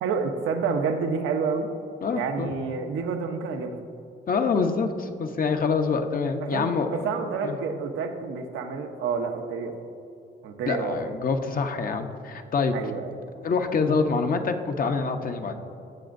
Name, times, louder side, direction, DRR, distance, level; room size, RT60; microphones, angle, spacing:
voice 1, 0.0-1.7 2.1-3.8 6.4-9.8 10.4-11.0 12.7-13.2, right 5 dB, 85° right, 5 dB, 0.9 m, -29 dB
voice 2, 2.0-2.5 4.3-6.9 7.4-7.6 10.6-12.8 13.4-15.5, left 4 dB, 45° left, 6 dB, 0.8 m, -26 dB
15.5 x 6.2 x 2.6 m, 2.6 s
cardioid pair, 90°, 20 cm